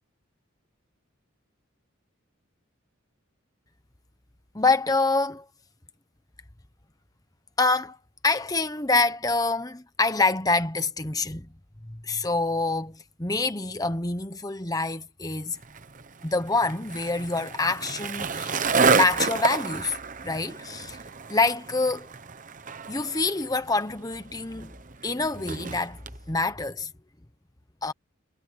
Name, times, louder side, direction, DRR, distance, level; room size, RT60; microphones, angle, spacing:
voice 1, 4.5-5.4 7.6-8.0 8.2-11.5 11.9-15.6 16.2-18.6 18.9-20.0 20.2-21.0 21.3-22.1 22.9-24.7 25.0-26.0 26.3-26.9 27.8-27.9, left 3 dB, 15° left, 1.1 m, -26 dB
Skateboard, 15.6-26.2, right 5 dB, 40° right, 0.9 m, -30 dB
head